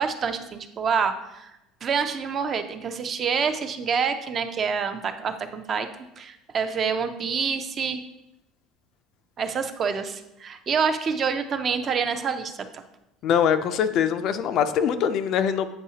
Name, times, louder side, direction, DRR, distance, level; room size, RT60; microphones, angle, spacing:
voice 1, 0.0-1.5 1.8-5.9 6.2-8.0 9.4-12.8, right 6 dB, 25° right, 9 dB, 0.4 m, -27 dB
voice 2, 13.2-15.7, left 8 dB, 40° left, 10 dB, 0.4 m, -23 dB
8.4 x 5.5 x 2.8 m, 0.89 s
cardioid pair, 170°, 0 cm